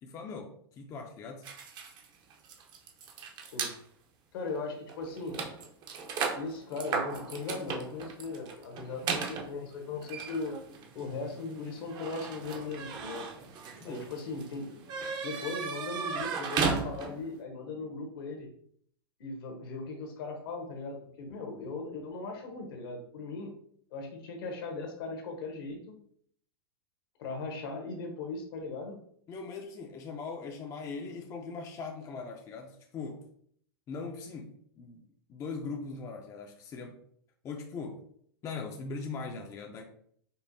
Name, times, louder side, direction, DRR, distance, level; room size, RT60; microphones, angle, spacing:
voice 1, 0.0-1.4 13.8-14.0 29.3-33.2 33.9-35.0 35.3-37.0 37.4-38.0 38.4-39.8, left 4 dB, 25° left, 2 dB, 0.5 m, -40 dB
sound 1, 1.4-3.8 4.5-4.6 4.9-17.3, right 5 dB, 35° right, 0.6 m, -36 dB
voice 2, 4.3-5.4 6.3-10.5 10.9-13.3 13.8-14.8 15.2-18.5 19.2-23.5 23.9-26.0 27.2-29.0, left 3 dB, 65° left, 3 dB, 1.0 m, -38 dB
5.3 x 2.1 x 2.6 m, 0.63 s
hypercardioid pair, 125°, 13 cm